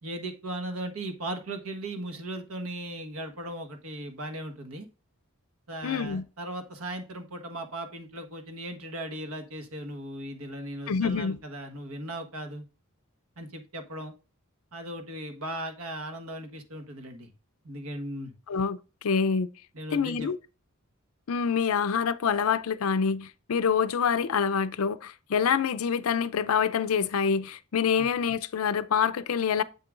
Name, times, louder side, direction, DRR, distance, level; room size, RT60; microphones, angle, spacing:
voice 1, 0.0-4.9 5.7-12.6 13.4-14.1 14.7-17.3 17.6-18.3 19.7-20.3 27.9-28.1, right 1 dB, 70° right, 1.3 m, -37 dB
voice 2, 5.8-6.2 10.9-11.4 18.5-18.8 19.0-19.5 19.9-20.4 21.3-29.6, left 6 dB, 70° left, 0.5 m, -26 dB
7.5 x 6.8 x 2.5 m
head